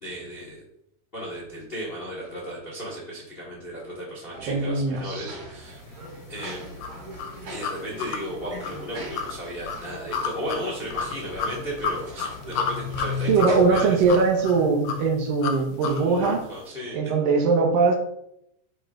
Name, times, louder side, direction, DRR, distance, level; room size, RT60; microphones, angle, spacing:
voice 1, 0.0-0.6 1.1-5.8 6.3-6.7 7.5-14.0 15.8-17.0, equal, 70° left, -4 dB, 0.5 m, -35 dB
sound 1, 4.3-13.6, right 1 dB, 55° right, 3.2 m, -41 dB
voice 2, 4.5-5.3 13.3-16.4 16.9-18.0, right 4 dB, 85° right, 2 dB, 2.8 m, -21 dB
sound 2, 6.4-16.5, left 6 dB, 85° left, 2.3 m, -31 dB
9.0 x 5.1 x 2.5 m, 0.78 s
omnidirectional pair, 3.9 m